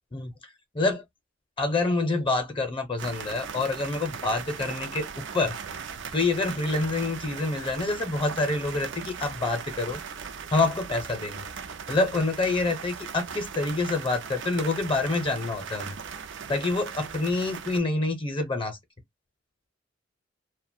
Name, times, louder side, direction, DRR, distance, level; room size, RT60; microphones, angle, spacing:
voice 1, 1.6-5.6 6.1-10.0 10.5-11.4 11.9-16.0 16.5-18.8, left 3 dB, 25° left, 0.6 m, -27 dB
sound 1, 3.0-17.8, right 6 dB, 65° right, 0.5 m, -38 dB
2.4 x 2.1 x 2.6 m
head